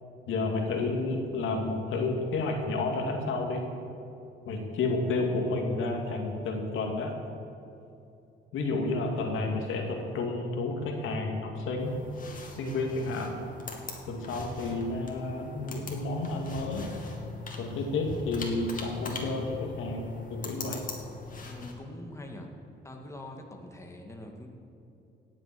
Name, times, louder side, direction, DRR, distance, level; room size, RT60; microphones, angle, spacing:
voice 1, 0.3-3.6 4.5-7.1 8.5-11.9 12.6-13.4 14.1-16.8 17.6-20.8, left 3 dB, 80° left, 2 dB, 2.3 m, -31 dB
sound 1, 11.8-21.7, left 3 dB, 45° left, 2.6 m, -41 dB
voice 2, 21.4-22.6 22.8-24.5, left 1 dB, 15° left, 1 dB, 2.1 m, -44 dB
18.0 x 7.6 x 7.6 m, 2.7 s
cardioid pair, 90°, 20 cm